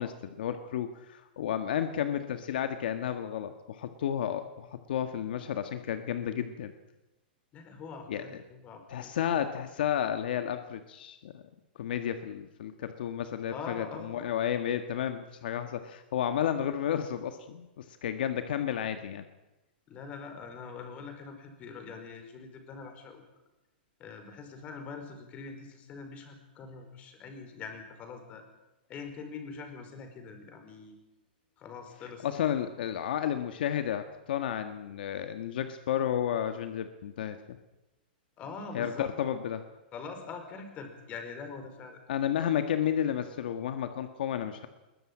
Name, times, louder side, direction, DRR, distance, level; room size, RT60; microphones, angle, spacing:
voice 1, 0.0-6.7 8.1-8.4 8.9-11.4 11.8-19.2 32.2-37.6 38.7-39.6 42.1-44.7, left 9 dB, 65° left, 8 dB, 1.7 m, -32 dB
voice 2, 7.5-9.2 13.5-14.2 19.9-23.2 24.0-28.4 28.9-31.0 31.6-32.3 38.4-39.1 39.9-42.0, left 5 dB, 25° left, 6 dB, 4.9 m, -43 dB
21.5 x 20.5 x 8.8 m, 1.0 s
hypercardioid pair, 155°, 5 cm